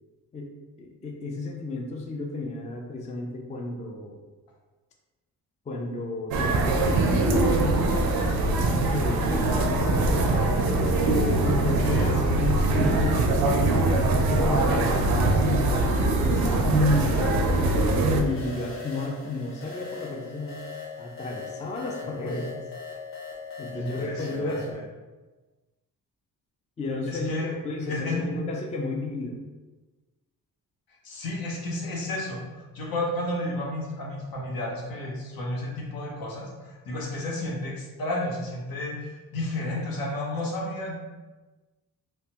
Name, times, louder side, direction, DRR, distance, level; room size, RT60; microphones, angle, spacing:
voice 1, 0.3-4.2 5.7-10.3 11.1-13.7 14.1-17.7 18.1-20.6 21.0-22.5 23.6-24.8 26.8-29.4, left 2 dB, 20° left, 1 dB, 0.3 m, -33 dB
sound 1, 6.3-18.2, right 2 dB, 85° right, 0.5 m, -22 dB
voice 2, 11.6-12.2 22.2-22.4 23.7-24.8 27.1-27.5 27.8-28.3 31.0-41.0, left 1 dB, 75° left, -3 dB, 0.9 m, -32 dB
sound 2, 15.7-24.7, left 4 dB, 35° left, 0.8 m, -41 dB
3.2 x 2.0 x 2.8 m, 1.2 s
cardioid pair, 90°, 35 cm